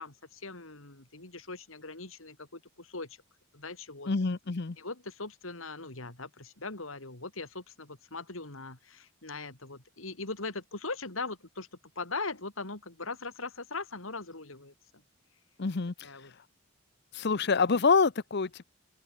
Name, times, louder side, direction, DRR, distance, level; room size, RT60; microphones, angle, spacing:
voice 1, 0.0-3.2 3.5-4.1 4.8-11.7 12.0-14.7 16.0-16.3, left 3 dB, 75° left, 3.8 m, -40 dB
voice 2, 4.1-4.8 15.6-15.9 17.1-18.6, left 4 dB, 55° left, 0.7 m, -26 dB
open air
head